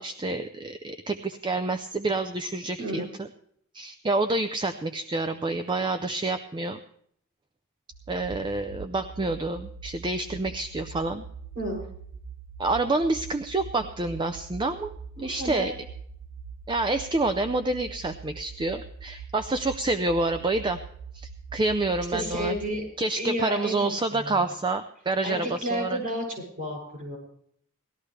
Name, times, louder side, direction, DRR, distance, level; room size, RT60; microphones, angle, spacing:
voice 1, 0.0-3.3 3.7-6.8 8.1-11.2 12.6-14.9 15.2-15.7 16.7-20.8 21.1-22.6 23.0-26.0, right 2 dB, 20° right, 8 dB, 0.5 m, -28 dB
voice 2, 2.8-3.1 11.5-11.8 15.2-15.7 22.1-22.8 23.2-24.4 25.2-26.2 26.6-27.2, equal, 45° right, -1 dB, 7.4 m, -31 dB
sound 1, 7.9-22.7, right 6 dB, 90° right, 1.8 m, -43 dB
18.5 x 13.0 x 3.3 m, 0.66 s
head